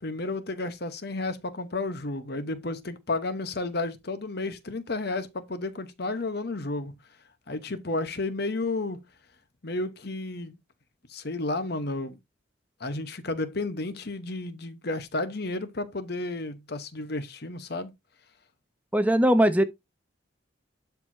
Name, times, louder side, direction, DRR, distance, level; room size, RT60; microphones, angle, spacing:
voice 1, 0.0-6.9 7.5-9.0 9.6-10.6 11.1-12.2 12.8-17.9, left 2 dB, 55° left, 1.0 m, -32 dB
voice 2, 18.9-19.6, right 1 dB, 10° right, 0.5 m, -20 dB
11.5 x 4.7 x 2.7 m
head